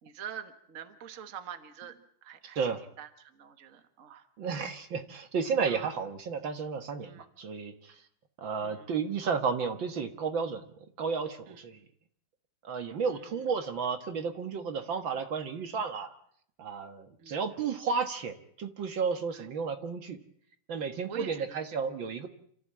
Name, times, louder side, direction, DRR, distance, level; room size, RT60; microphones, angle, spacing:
voice 1, 0.0-2.6 3.0-4.3 5.7-5.9 7.0-7.2 8.6-8.9 11.4-11.6 13.0-13.4 17.2-17.4 19.3-19.5 21.1-21.6, right 8 dB, 40° right, 8 dB, 1.7 m, -45 dB
voice 2, 4.4-7.9 8.4-10.6 11.0-11.8 12.6-16.1 16.6-20.2 20.7-22.3, right 5 dB, 60° right, 7 dB, 2.1 m, -32 dB
28.0 x 14.5 x 8.6 m, 0.66 s
omnidirectional pair, 2.4 m